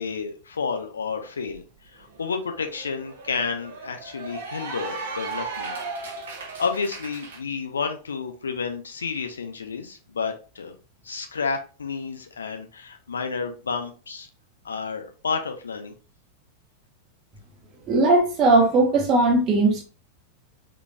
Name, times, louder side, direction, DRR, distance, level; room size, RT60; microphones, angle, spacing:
voice 1, 0.0-1.6 1.9-5.7 6.6-10.7 11.0-14.3 14.6-15.9, left 5 dB, 70° left, 0.6 m, -30 dB
Cheering / Applause, 1.5-1.6 2.0-7.4, right 4 dB, 60° right, 1.1 m, -36 dB
voice 2, 17.9-19.8, right 2 dB, 35° right, 1.3 m, -18 dB
3.8 x 3.5 x 2.2 m
figure-of-eight pair, 90°, 0 cm